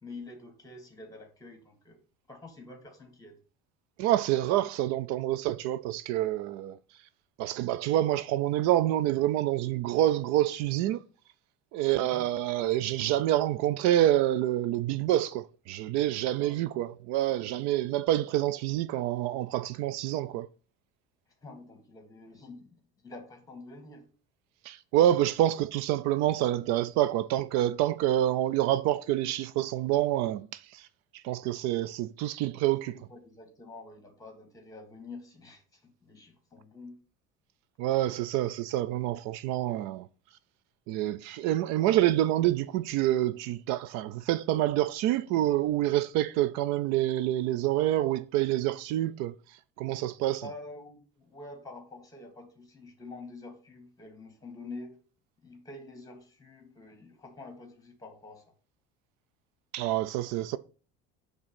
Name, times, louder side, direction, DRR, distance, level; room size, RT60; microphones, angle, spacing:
voice 1, 0.0-2.0 2.3-3.4 10.1-10.3 11.9-12.3 16.4-16.7 21.4-24.1 32.9-37.0 50.4-55.0 55.4-58.5, left 3 dB, 10° left, 1.9 m, -47 dB
voice 2, 4.0-6.8 7.4-11.0 11.7-20.5 24.7-30.5 30.7-30.8 31.2-33.0 37.8-40.1 40.9-49.3 49.8-50.4 59.7-60.6, right 13 dB, 65° right, 0.4 m, -27 dB
6.2 x 3.6 x 5.9 m
cardioid pair, 120°, 29 cm